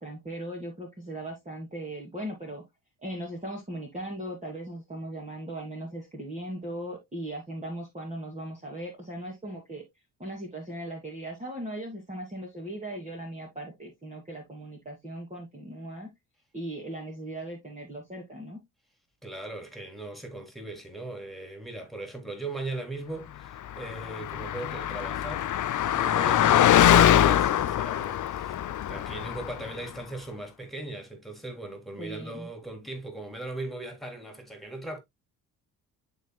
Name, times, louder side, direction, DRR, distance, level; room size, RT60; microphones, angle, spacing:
voice 1, 0.0-2.6 3.0-9.8 10.2-16.1 16.5-18.6 32.0-32.5, right 1 dB, 15° right, 2.6 m, -38 dB
voice 2, 19.2-25.5 25.8-28.5 28.9-35.0, right 2 dB, ahead, 3.4 m, -39 dB
Car passing by, 23.7-29.7, left 11 dB, 40° left, 0.7 m, -23 dB
11.5 x 4.1 x 2.3 m
hypercardioid pair, 55°, 46 cm